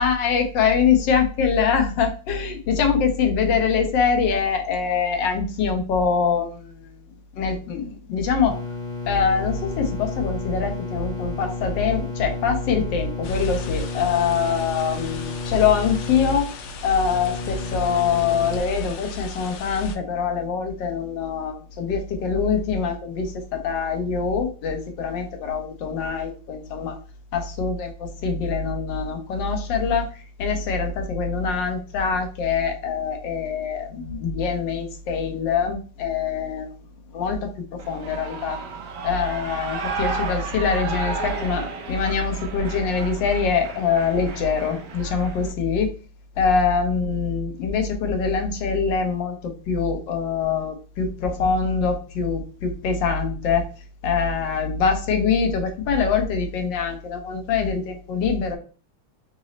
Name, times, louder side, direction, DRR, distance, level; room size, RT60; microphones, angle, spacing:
voice 1, 0.0-6.9 7.3-8.6 9.1-16.5 16.8-27.0 27.3-36.7 37.1-38.6 39.0-45.9 46.4-53.6 54.0-58.6, left 6 dB, 70° left, 4 dB, 1.2 m, -24 dB
sound 1, 8.5-18.6, left 3 dB, 50° left, 0.5 m, -32 dB
sound 2, 13.2-20.0, left 5 dB, 85° left, 1.5 m, -39 dB
Shout / Cheering, 37.8-45.5, right 4 dB, 70° right, 1.0 m, -33 dB
3.9 x 2.0 x 3.8 m, 0.37 s
omnidirectional pair, 2.3 m